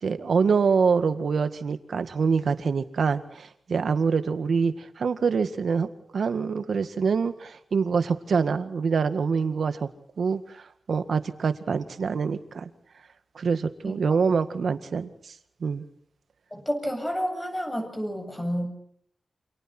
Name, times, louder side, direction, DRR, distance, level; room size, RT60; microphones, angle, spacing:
voice 1, 0.0-9.9 10.2-10.6 10.9-12.7 13.4-15.1 15.6-15.8, right 5 dB, 70° right, 9 dB, 1.9 m, -25 dB
voice 2, 16.5-18.7, equal, 10° left, 5 dB, 7.9 m, -30 dB
29.0 x 27.0 x 4.5 m, 0.68 s
wide cardioid pair, 125°, 0 cm